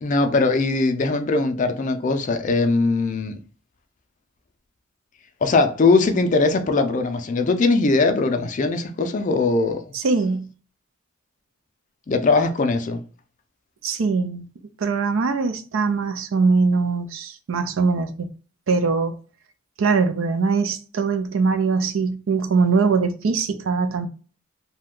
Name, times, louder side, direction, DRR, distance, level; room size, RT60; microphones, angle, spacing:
voice 1, 0.0-3.4 5.4-9.9 12.1-13.0, left 3 dB, 40° left, 0.4 m, -20 dB
voice 2, 9.9-10.5 13.8-14.5 14.8-18.3 18.7-19.1 19.8-24.1, right 4 dB, 85° right, 0.4 m, -22 dB
2.7 x 2.2 x 3.6 m
head